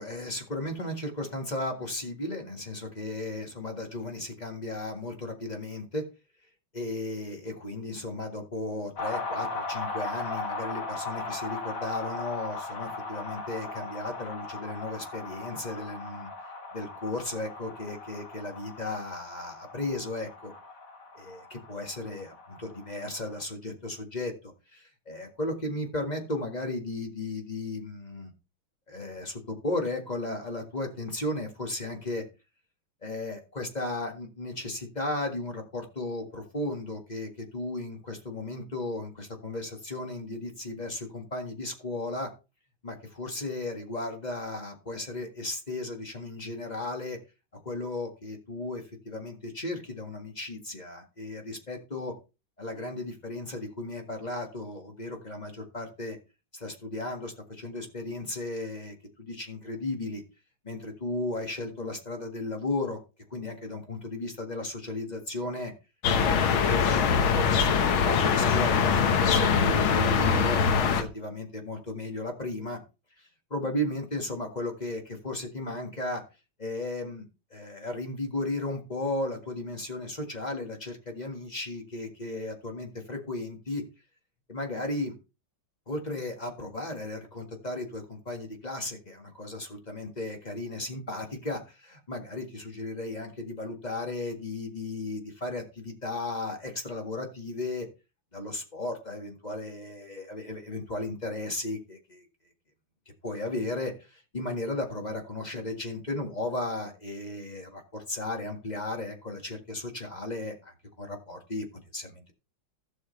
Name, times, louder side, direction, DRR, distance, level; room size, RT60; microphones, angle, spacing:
voice 1, 0.0-6.0 6.7-16.3 16.7-20.5 21.1-24.3 24.7-28.3 28.9-32.2 33.0-42.3 42.8-47.2 47.6-52.1 52.6-56.2 56.5-60.2 60.6-63.0 63.3-65.7 66.2-72.8 73.2-76.2 76.6-77.2 77.5-83.8 84.5-85.1 85.9-97.9 98.3-102.3 103.2-111.6 111.9-112.3, left 2 dB, 20° left, 3 dB, 1.7 m, -35 dB
sound 1, 9.0-23.4, left 3 dB, 45° left, 1.8 m, -38 dB
sound 2, 66.0-71.0, left 6 dB, 80° left, 1.9 m, -23 dB
15.5 x 6.3 x 3.2 m, 0.29 s
omnidirectional pair, 2.2 m